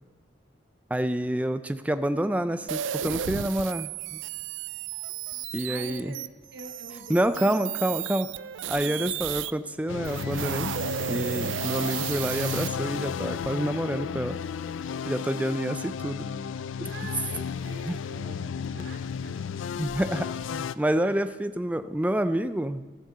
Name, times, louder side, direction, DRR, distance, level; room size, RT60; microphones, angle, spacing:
voice 1, 0.9-4.2 5.5-6.1 7.1-8.3 8.7-10.8 11.0-14.4 15.1-16.3 16.8-16.9 17.9-18.0 18.7-18.8 19.8-22.8, right 1 dB, 10° right, 11 dB, 0.4 m, -28 dB
sound 1, 2.7-9.5 10.0-12.7, right 10 dB, 80° right, 0.4 m, -33 dB
voice 2, 5.7-8.1 8.7-9.0 15.3-15.7 16.8-19.5 21.0-21.3, right 2 dB, 65° right, 5 dB, 0.9 m, -46 dB
sound 2, 9.9-20.7, left 7 dB, 85° left, 0.4 m, -33 dB
14.0 x 7.6 x 6.7 m, 1.3 s
head